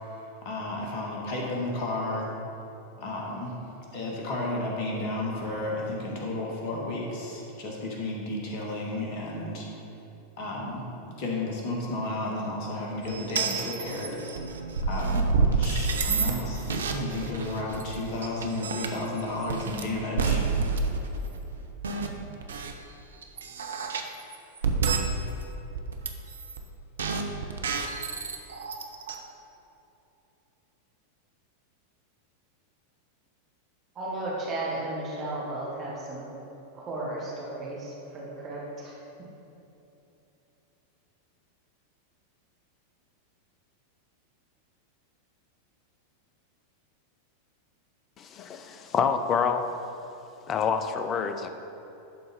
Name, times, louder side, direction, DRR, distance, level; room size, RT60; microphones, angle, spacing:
voice 1, 0.4-2.3 3.0-3.5 3.9-9.7 10.4-14.2 14.9-20.4, left 2 dB, 45° left, -2 dB, 1.5 m, -32 dB
sound 1, 13.0-22.7 23.2-25.4 25.7-26.6 27.0-29.1, right 4 dB, 65° right, 0.6 m, -29 dB
voice 2, 33.9-36.4 36.7-38.9, right 2 dB, 30° right, -5 dB, 1.5 m, -34 dB
voice 3, 48.2-49.7 50.5-51.5, left 6 dB, 30° left, 8 dB, 0.5 m, -27 dB
11.5 x 4.0 x 4.1 m, 3.0 s
figure-of-eight pair, 90°, 0 cm